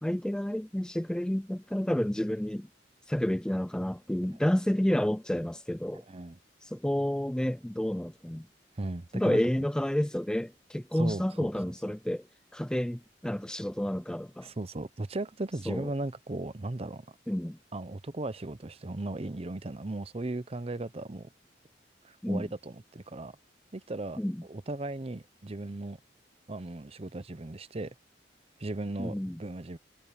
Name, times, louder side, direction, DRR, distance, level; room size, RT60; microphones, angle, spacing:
voice 1, 0.0-2.7 3.1-6.0 6.6-8.5 9.1-12.3 12.5-14.5 15.7-15.9 17.3-17.6 22.2-22.5 24.2-24.4 29.0-29.4, equal, 5° left, 0.3 m, -30 dB
voice 2, 8.8-9.4 11.0-11.5 14.4-17.1 17.7-21.3 22.0-23.4 23.7-24.2 24.5-26.0 26.5-27.9 28.6-29.8, right 2 dB, 35° right, 0.7 m, -36 dB
head